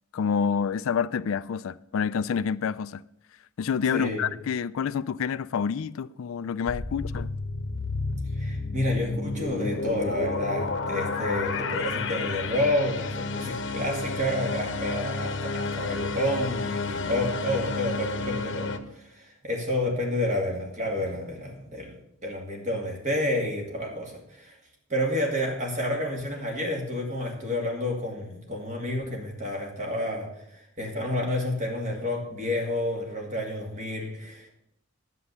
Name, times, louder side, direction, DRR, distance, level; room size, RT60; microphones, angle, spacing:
voice 1, 0.1-3.0 3.6-7.3, left 6 dB, 70° left, 0.4 m, -28 dB
voice 2, 3.9-4.2 8.4-24.6 24.9-30.3 30.5-34.5, left 1 dB, 35° right, 2.5 m, -30 dB
sound 1, 6.7-18.8, left 3 dB, 55° left, 0.9 m, -31 dB
9.8 x 7.6 x 6.9 m
head